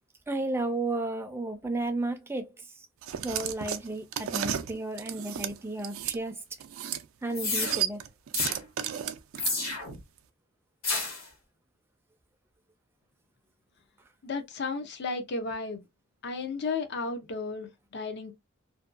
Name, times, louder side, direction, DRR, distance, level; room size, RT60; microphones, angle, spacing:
voice 1, 0.3-2.5 3.2-6.4 7.2-8.0, right 2 dB, 10° right, 0.4 m, -33 dB
sound 1, 3.0-6.2 6.6-7.0 7.3-9.9, right 10 dB, 75° right, 0.4 m, -34 dB
sound 2, 7.3-7.8 8.3-8.6 9.4-10.0 10.8-11.2, left 3 dB, 80° left, 1.4 m, -30 dB
voice 2, 14.2-15.8 16.2-18.3, left 4 dB, 55° left, 0.6 m, -33 dB
2.6 x 2.2 x 2.4 m
head